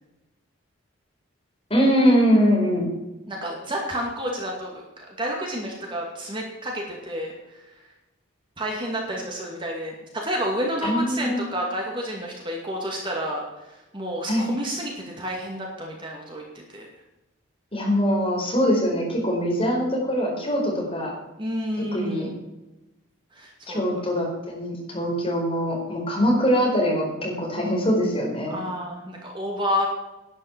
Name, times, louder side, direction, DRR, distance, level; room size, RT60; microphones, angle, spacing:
voice 1, 1.7-2.9 10.8-11.4 14.3-14.4 17.7-21.1 21.8-22.3 23.7-28.6, equal, 30° left, -1 dB, 4.6 m, -22 dB
voice 2, 3.3-7.3 8.6-13.4 13.9-16.4 16.7-16.9 21.4-22.3 23.3-23.8 28.5-29.9, equal, 25° right, -1 dB, 2.3 m, -30 dB
11.5 x 9.5 x 7.3 m, 1.0 s
head